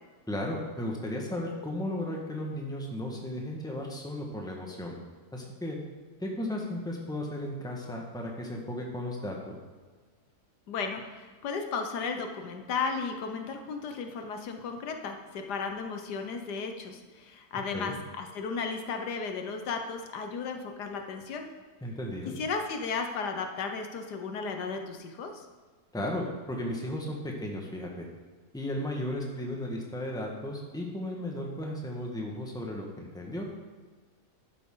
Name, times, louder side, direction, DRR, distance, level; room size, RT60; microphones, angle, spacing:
voice 1, 0.3-5.0 5.3-5.8 6.2-9.6 17.7-17.9 21.8-22.4 25.9-28.1 28.5-33.5, left 1 dB, 5° left, 0 dB, 1.3 m, -35 dB
voice 2, 10.7-21.5 22.4-25.5, left 5 dB, 90° left, 5 dB, 1.6 m, -34 dB
12.0 x 8.3 x 3.8 m, 1.5 s
omnidirectional pair, 1.7 m